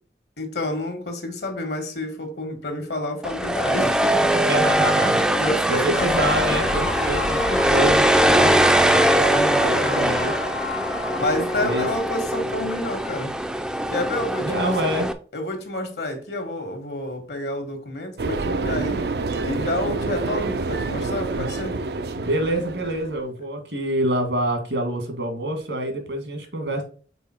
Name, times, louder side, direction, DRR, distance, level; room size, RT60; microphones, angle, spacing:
voice 1, 0.4-4.5 5.0-6.1 6.5-6.6 8.8-10.1 11.2-13.3 13.9-14.7 15.3-19.1 19.4-21.8, left 1 dB, 70° left, 1.5 m, -29 dB
sound 1, 3.2-15.1, right 1 dB, 5° right, 0.4 m, -21 dB
voice 2, 4.5-5.2 5.7-8.7 9.6-10.3 11.6-11.9 14.3-15.1 22.1-26.8, right 1 dB, 80° right, 1.9 m, -26 dB
sound 2, 6.0-12.0, left 5 dB, 85° left, 0.5 m, -31 dB
sound 3, 18.2-23.2, right 3 dB, 65° right, 0.5 m, -27 dB
5.5 x 4.2 x 4.3 m
head